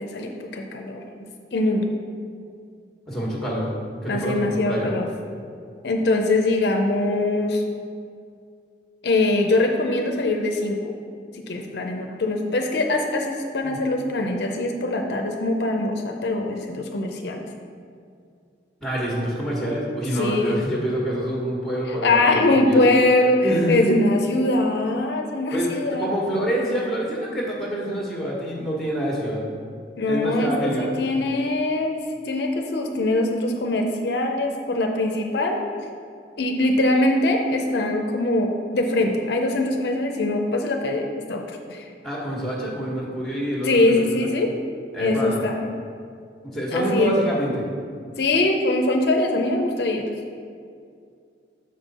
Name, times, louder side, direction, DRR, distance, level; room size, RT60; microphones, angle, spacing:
voice 1, 0.0-1.9 4.0-5.1 5.8-7.6 9.0-10.8 11.3-17.5 20.1-20.5 21.9-26.1 30.0-35.6 36.4-41.9 43.6-44.5 45.0-45.6 46.7-47.1 48.2-50.0, left 2 dB, 65° left, 3 dB, 0.5 m, -22 dB
voice 2, 3.1-3.7 4.0-4.9 13.6-13.8 18.8-22.8 23.4-23.9 25.5-25.7 26.0-29.4 30.1-30.9 42.0-44.0 44.9-45.4 46.5-47.6, equal, ahead, -4 dB, 1.3 m, -26 dB
6.5 x 5.3 x 4.1 m, 2.3 s
head